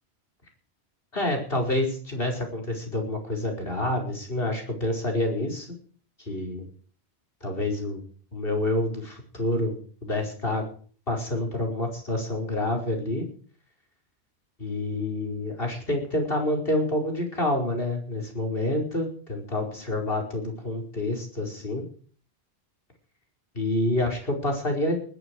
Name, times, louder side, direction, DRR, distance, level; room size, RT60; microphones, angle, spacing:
voice 1, 1.1-5.7 6.3-6.7 7.4-8.0 8.3-9.8 10.0-10.6 11.1-13.3 14.6-21.8 23.5-25.0, left 1 dB, 60° left, 2 dB, 5.4 m, -28 dB
20.0 x 12.0 x 4.8 m, 0.43 s
omnidirectional pair, 1.1 m